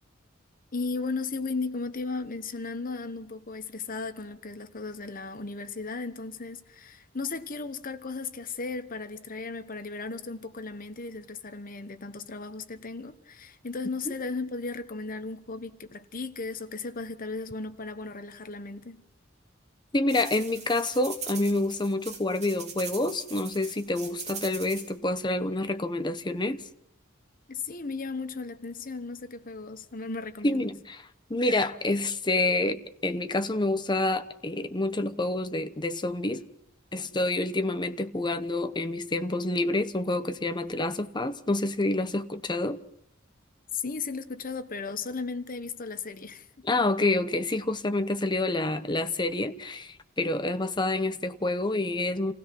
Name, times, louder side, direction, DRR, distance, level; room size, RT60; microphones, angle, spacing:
voice 1, 0.7-19.0 27.5-30.7 43.7-46.5, left 4 dB, 45° left, 1.1 m, -36 dB
voice 2, 19.9-26.6 30.4-31.0 31.3-36.4 36.9-42.8 46.6-52.3, left 2 dB, 25° left, 0.9 m, -28 dB
sound 1, 20.1-24.9, right 5 dB, 35° right, 3.1 m, -41 dB
27.5 x 16.5 x 6.0 m
head